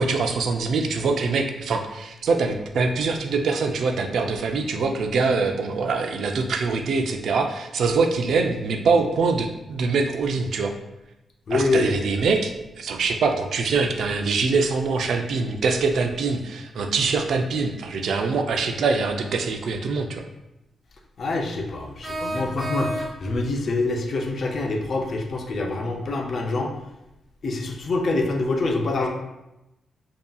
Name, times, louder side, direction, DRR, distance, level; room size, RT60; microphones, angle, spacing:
voice 1, 0.0-10.7 11.5-12.5 12.8-20.2, right 4 dB, 75° right, 5 dB, 0.4 m, -24 dB
voice 2, 11.5-11.9 21.2-26.7 27.4-29.1, left 3 dB, 55° left, 2 dB, 0.5 m, -25 dB
sound 1, 22.0-23.4, right 1 dB, 30° right, 1.1 m, -31 dB
5.3 x 2.8 x 2.3 m, 0.94 s
cardioid pair, 90°, 0 cm